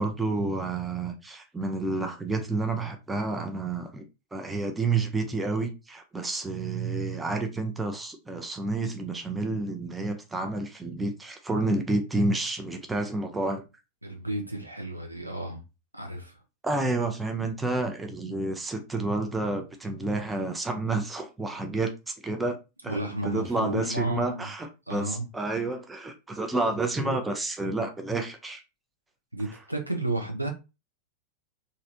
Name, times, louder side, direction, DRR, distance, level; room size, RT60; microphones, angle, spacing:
voice 1, 0.0-4.0 4.3-13.6 16.6-22.6 22.8-28.6 29.5-29.6, right 2 dB, 10° right, 0.6 m, -30 dB
voice 2, 14.0-15.6 15.9-16.4 22.9-24.5 24.9-25.3 29.3-30.5, right 2 dB, 85° right, 0.7 m, -32 dB
3.1 x 2.6 x 2.5 m
figure-of-eight pair, 90°, 0 cm